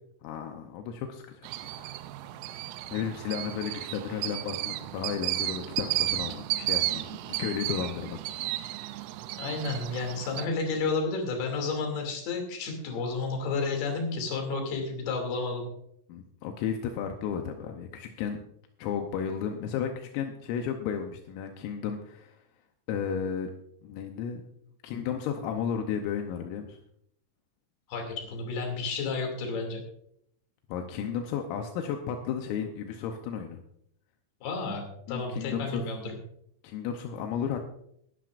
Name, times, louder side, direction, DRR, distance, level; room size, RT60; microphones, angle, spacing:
voice 1, 0.2-2.0 2.9-8.2 16.1-18.4 18.8-22.4 22.9-23.5 23.8-24.4 24.8-26.8 30.7-33.6 35.1-35.9 36.6-37.6, left 7 dB, 85° left, 4 dB, 3.5 m, -33 dB
sound 1, 1.4-10.5, right 15 dB, 85° right, 3.3 m, -33 dB
voice 2, 9.4-15.7 27.9-29.8 34.4-36.2, left 3 dB, 55° left, 2 dB, 4.3 m, -31 dB
20.0 x 12.0 x 2.5 m, 0.72 s
omnidirectional pair, 6.0 m